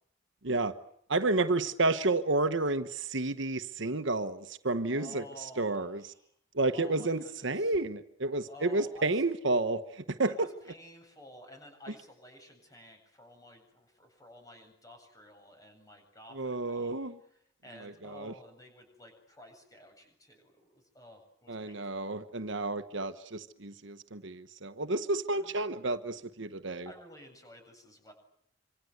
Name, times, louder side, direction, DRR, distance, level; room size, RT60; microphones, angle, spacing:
voice 1, 0.4-0.7 1.1-6.0 6.5-10.5 16.3-17.2 17.8-18.3 21.5-26.9, right 2 dB, 65° right, 1.3 m, -31 dB
voice 2, 4.9-6.3 6.7-7.7 8.5-9.2 10.3-16.9 17.6-22.0 25.3-25.5 26.8-28.1, left 1 dB, 15° left, 7.9 m, -52 dB
26.5 x 26.0 x 8.1 m
head